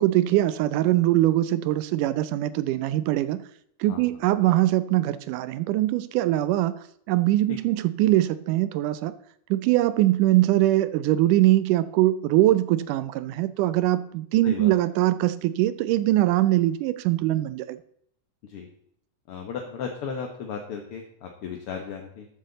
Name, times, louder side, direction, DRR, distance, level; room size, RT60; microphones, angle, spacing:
voice 1, 0.0-3.4 3.8-9.1 9.5-17.8, right 15 dB, 85° right, 15 dB, 2.1 m, -22 dB
voice 2, 19.3-22.3, left 6 dB, 60° left, 2 dB, 1.7 m, -35 dB
13.5 x 8.4 x 4.0 m, 0.70 s
omnidirectional pair, 3.7 m